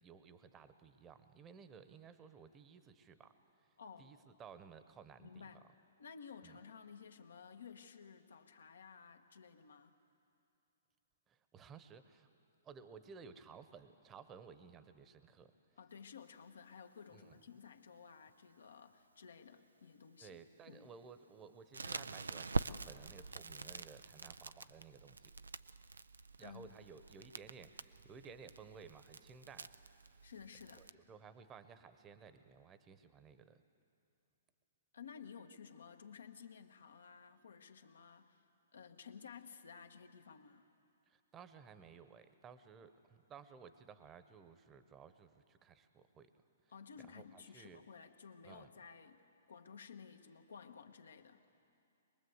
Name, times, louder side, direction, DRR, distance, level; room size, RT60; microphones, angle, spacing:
voice 1, 0.0-3.3 4.0-5.4 6.4-6.6 11.3-12.3 12.6-15.5 17.1-17.3 20.2-25.3 26.4-29.7 30.0-30.2 30.7-33.6 41.1-46.3 47.0-47.8 48.4-48.7, right 6 dB, 20° right, 11 dB, 1.1 m, -57 dB
voice 2, 3.8-4.1 5.2-5.7 6.0-10.0 15.8-20.4 20.7-20.9 26.4-26.7 30.2-30.9 34.9-38.4 38.7-40.7 46.7-49.2 49.5-51.4, left 6 dB, 80° left, 6 dB, 1.3 m, -54 dB
Crackle, 21.7-30.9, right 3 dB, 90° right, 0.5 m, -45 dB
23.0 x 20.5 x 8.0 m, 2.6 s
hypercardioid pair, 125°, 0 cm